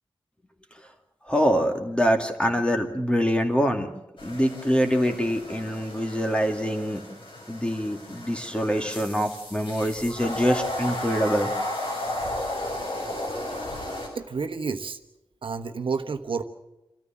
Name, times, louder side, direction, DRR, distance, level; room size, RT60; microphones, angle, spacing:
voice 1, 1.3-3.9 4.2-7.0 7.5-11.5, equal, 10° left, 4 dB, 2.3 m, -24 dB
sound 1, 4.2-14.1, left 1 dB, 70° left, 6.9 m, -34 dB
voice 2, 14.1-15.0 15.4-16.4, right 5 dB, 70° right, 7 dB, 1.2 m, -30 dB
27.0 x 13.5 x 7.4 m, 0.95 s
wide cardioid pair, 110°, 9 cm